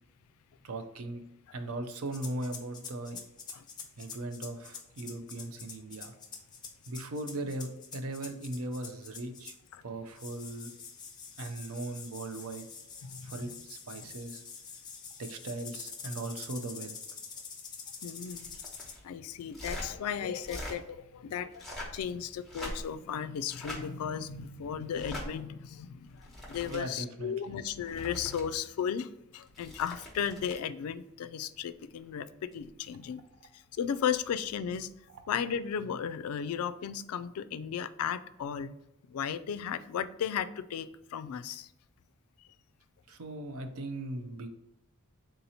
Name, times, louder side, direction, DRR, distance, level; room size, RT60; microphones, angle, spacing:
voice 1, 0.6-1.2 1.5-3.2 4.0-6.1 6.9-9.5 9.8-10.7 11.4-12.7 13.2-14.4 15.2-17.0 26.7-27.3 43.1-44.5, right 2 dB, 70° right, 7 dB, 0.5 m, -38 dB
sound 1, 2.1-9.7 10.2-19.0, left 6 dB, 20° left, 0.4 m, -46 dB
voice 2, 13.0-13.5 18.0-18.6 19.0-33.2 33.8-34.9 35.3-38.7 39.1-41.7, left 8 dB, 80° left, 14 dB, 0.3 m, -35 dB
sound 2, 18.3-19.0 19.5-19.9 20.4-20.8 21.5-22.0 22.4-23.0 23.5-23.8 24.9-25.3 26.1-26.8 27.7-28.4 29.5-30.7 32.5-32.7, left 1 dB, ahead, 1.0 m, -42 dB
3.7 x 2.8 x 4.1 m, 0.90 s
head